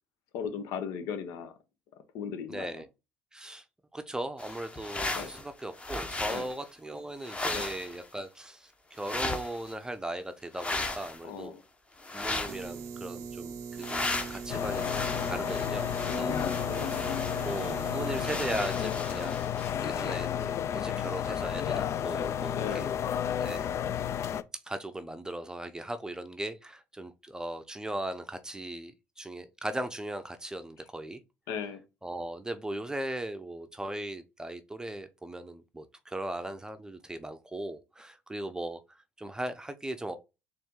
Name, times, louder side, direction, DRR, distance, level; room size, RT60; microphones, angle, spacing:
voice 1, 0.3-1.5 2.1-2.8 5.1-5.3 6.3-6.5 7.5-7.7 11.2-11.6 16.1-16.9 22.6-22.8 31.5-31.8, left 6 dB, 75° left, 0.8 m, -37 dB
voice 2, 2.5-2.9 3.3-3.6 3.9-11.6 12.1-16.3 17.4-19.4 19.8-22.9 23.4-23.7 24.6-31.2 32.0-40.1, right 1 dB, 10° right, 0.6 m, -38 dB
sound 1, 4.4-5.5 5.7-6.5 7.2-8.1 9.0-9.7 10.6-11.2 12.0-12.7 13.8-19.8, left 2 dB, 20° left, 0.9 m, -36 dB
sound 2, 12.5-18.6, right 6 dB, 65° right, 0.6 m, -41 dB
sound 3, 14.5-24.4, left 9 dB, 55° left, 0.4 m, -32 dB
4.1 x 2.6 x 3.7 m
supercardioid pair, 70°, 6 cm